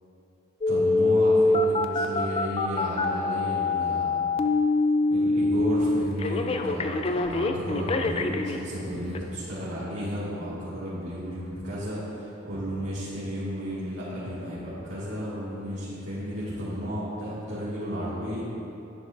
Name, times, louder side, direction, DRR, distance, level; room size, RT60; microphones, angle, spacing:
Telephone, 0.6-8.6 9.1-9.2, left 2 dB, 30° left, 0.4 m, -24 dB
voice 1, 0.6-4.2 5.1-18.4, equal, 75° right, -11 dB, 2.1 m, -33 dB
11.0 x 10.5 x 2.6 m, 2.9 s
head